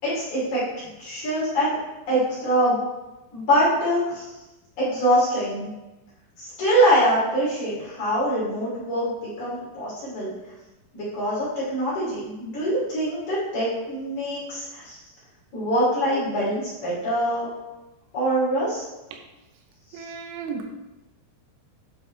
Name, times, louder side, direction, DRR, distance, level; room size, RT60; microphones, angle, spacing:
voice 1, 0.0-1.8 2.1-2.8 3.3-4.4 4.8-5.7 6.4-9.1 9.4-10.3 10.9-15.0 15.5-17.5 18.1-18.8 19.9-20.1, equal, 45° left, -9 dB, 3.5 m, -24 dB
voice 2, 19.9-20.7, right 5 dB, 85° right, 3 dB, 3.3 m, -34 dB
10.0 x 4.7 x 3.2 m, 1.0 s
omnidirectional pair, 5.6 m